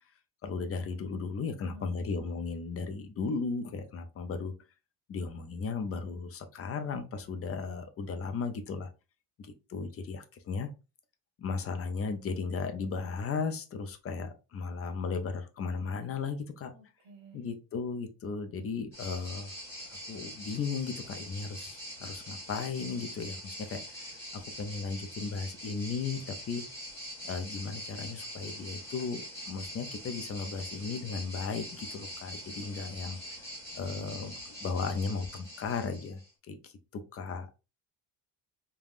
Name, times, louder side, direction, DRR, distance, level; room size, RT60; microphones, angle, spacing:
voice 1, 0.4-4.5 5.1-8.9 9.4-10.7 11.4-16.7 17.3-19.5 20.1-23.8 24.3-26.6 27.2-33.2 33.7-36.7 37.1-37.5, left 5 dB, 35° left, 7 dB, 0.4 m, -35 dB
voice 2, 1.6-2.1 16.6-17.4, right 2 dB, 75° right, 1 dB, 1.0 m, -52 dB
sound 1, 18.9-36.3, equal, 5° left, 1.5 m, -44 dB
3.4 x 2.3 x 2.4 m, 0.30 s
cardioid pair, 140°, 43 cm